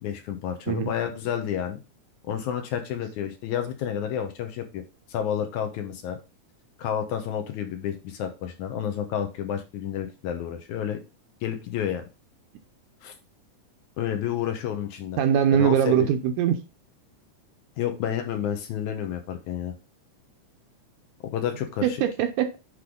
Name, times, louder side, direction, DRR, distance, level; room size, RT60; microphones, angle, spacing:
voice 1, 0.0-1.8 2.2-4.8 5.1-6.2 6.8-11.0 11.4-12.1 13.0-13.1 14.0-15.2 15.5-16.1 17.8-19.7 21.3-22.0, left 9 dB, 75° left, 2.1 m, -30 dB
voice 2, 15.2-16.6 21.8-22.6, right 9 dB, 75° right, 2.1 m, -22 dB
9.9 x 3.3 x 3.6 m
omnidirectional pair, 3.7 m